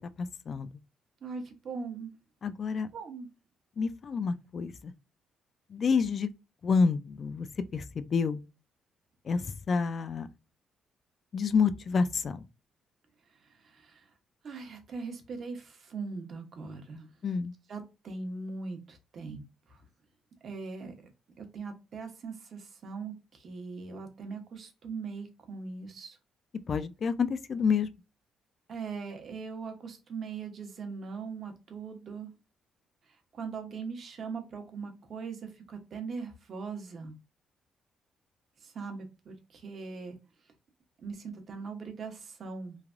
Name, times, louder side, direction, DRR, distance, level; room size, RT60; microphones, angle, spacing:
voice 1, 1.2-2.1 2.9-3.3 13.5-14.1 14.4-17.1 17.7-19.4 19.7-19.8 20.4-20.9 21.4-26.2 28.7-32.3 33.3-37.1 38.6-40.2 41.0-42.8, right 4 dB, 55° right, 0.9 m, -40 dB
voice 2, 2.4-2.9 3.8-4.9 5.7-6.3 6.6-7.5 7.7-8.4 9.3-10.3 11.3-12.4 17.2-17.5 26.7-27.9, left 5 dB, 50° left, 0.3 m, -28 dB
3.2 x 2.2 x 2.5 m
cardioid pair, 90°, 0 cm